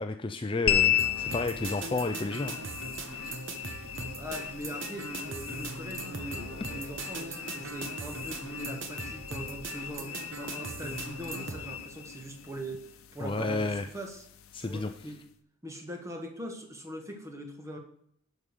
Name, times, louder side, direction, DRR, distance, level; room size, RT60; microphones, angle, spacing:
voice 1, 0.0-2.6 13.2-13.9 14.5-14.9, left 3 dB, 25° left, 7 dB, 0.5 m, -31 dB
sound 1, 0.7-15.3, left 11 dB, 85° left, 0.8 m, -35 dB
sound 2, 1.0-11.7, right 3 dB, 65° right, 1.3 m, -40 dB
voice 2, 4.1-14.2 14.6-15.2 15.6-17.8, right 1 dB, 15° right, 3 dB, 1.5 m, -41 dB
11.0 x 5.4 x 6.6 m, 0.69 s
head